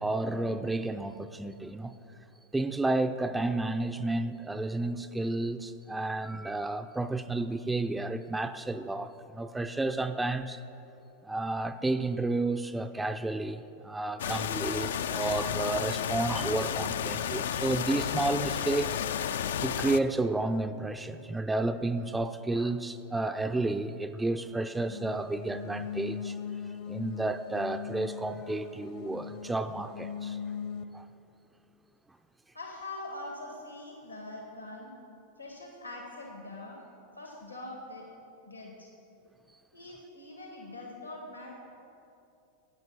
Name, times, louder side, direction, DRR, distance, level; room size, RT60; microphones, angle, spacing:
voice 1, 0.0-1.9 2.5-10.6 11.2-19.0 19.6-26.4 26.9-30.4 30.9-31.1, right 2 dB, 10° right, 8 dB, 0.4 m, -31 dB
sound 1, 14.2-20.0, left 8 dB, 60° left, 0.4 m, -32 dB
sound 2, 24.8-30.8, left 7 dB, 45° left, 0.8 m, -39 dB
voice 2, 32.5-34.9 35.4-36.8 37.2-38.1 38.4-38.9 39.7-41.6, left 2 dB, 85° left, 0 dB, 1.9 m, -43 dB
13.5 x 9.2 x 5.6 m, 2.7 s
figure-of-eight pair, 90°, 0 cm